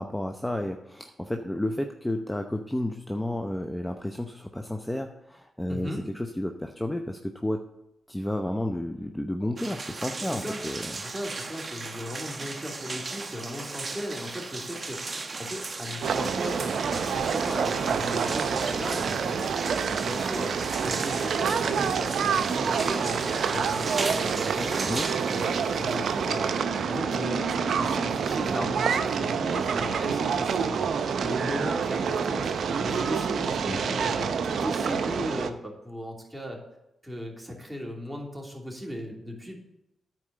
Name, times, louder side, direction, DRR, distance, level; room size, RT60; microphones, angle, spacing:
voice 1, 0.0-7.6 8.1-11.0 24.8-25.0 33.6-33.8, left 1 dB, 10° left, 5 dB, 0.8 m, -31 dB
voice 2, 5.7-6.0 10.2-10.6 10.9-19.5 19.9-24.8 25.3-26.6 26.9-30.8 31.2-36.6 37.0-39.6, equal, 10° right, 0 dB, 2.9 m, -37 dB
sound 1, 9.6-26.8, right 3 dB, 45° right, 1.0 m, -37 dB
sound 2, 16.0-35.5, right 6 dB, 75° right, 0.6 m, -27 dB
9.8 x 4.5 x 7.6 m, 0.85 s
supercardioid pair, 45°, 0 cm